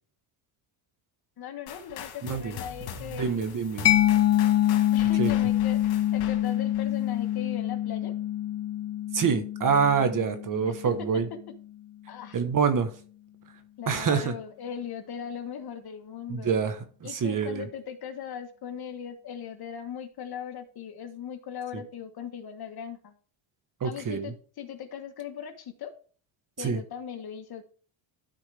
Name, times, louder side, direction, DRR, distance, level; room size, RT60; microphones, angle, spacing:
voice 1, 1.4-3.4 4.9-5.8 6.1-8.1 10.6-11.4 12.1-12.4 13.8-16.5 17.0-23.1 23.8-25.9 26.6-27.6, left 8 dB, 45° left, 1.4 m, -39 dB
sound 1, 1.7-7.5, left 8 dB, 90° left, 1.9 m, -43 dB
voice 2, 2.2-2.5 3.1-3.8 5.2-5.3 9.1-11.2 12.3-12.9 13.9-14.3 16.3-17.7 23.8-24.3 26.6-26.8, right 6 dB, 40° right, 1.3 m, -26 dB
Mallet percussion, 3.9-11.2, left 12 dB, 30° left, 0.7 m, -25 dB
13.0 x 4.5 x 3.4 m
cardioid pair, 110°, 50 cm